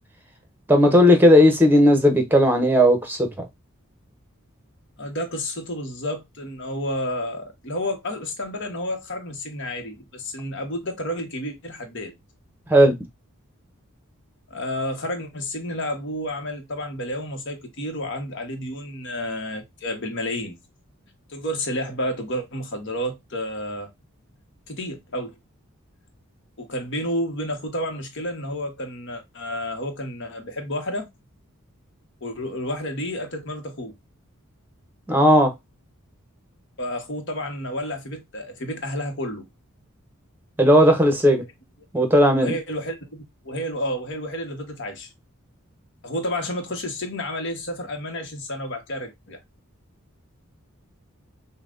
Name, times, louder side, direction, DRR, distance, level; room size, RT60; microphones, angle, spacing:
voice 1, 0.7-3.5 12.7-12.9 35.1-35.5 40.6-41.4 41.9-42.6, equal, 10° right, 0.9 m, -16 dB
voice 2, 5.0-12.1 14.5-20.6 21.3-23.9 24.7-25.4 26.6-31.1 32.2-33.9 36.8-39.4 42.4-45.1 46.0-49.4, left 1 dB, 55° left, 1.1 m, -30 dB
5.6 x 2.2 x 2.5 m
head